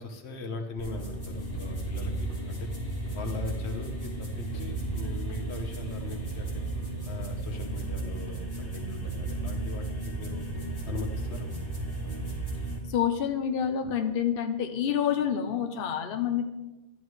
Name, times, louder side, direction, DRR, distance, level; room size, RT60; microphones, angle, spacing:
voice 1, 0.0-2.7 3.1-6.6 7.1-10.5 10.9-11.5, left 3 dB, 85° left, 6 dB, 1.3 m, -39 dB
sound 1, 0.8-12.8, right 2 dB, 20° left, 2.2 m, -34 dB
voice 2, 12.9-16.5, left 8 dB, 60° left, 6 dB, 0.9 m, -28 dB
12.5 x 10.0 x 3.2 m, 1.1 s
omnidirectional pair, 1.1 m